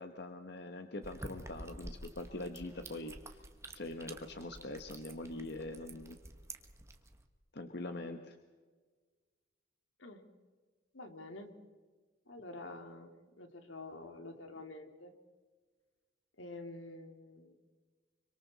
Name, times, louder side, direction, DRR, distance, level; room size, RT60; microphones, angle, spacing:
voice 1, 0.0-3.4 3.7-6.2 7.5-8.4, left 2 dB, 55° left, 6 dB, 1.2 m, -43 dB
sound 1, 1.0-7.2, right 1 dB, 15° right, 1.3 m, -50 dB
voice 2, 10.9-11.5 12.3-15.1 16.4-17.5, left 2 dB, 80° left, 5 dB, 2.6 m, -48 dB
26.0 x 25.0 x 4.1 m, 1.4 s
head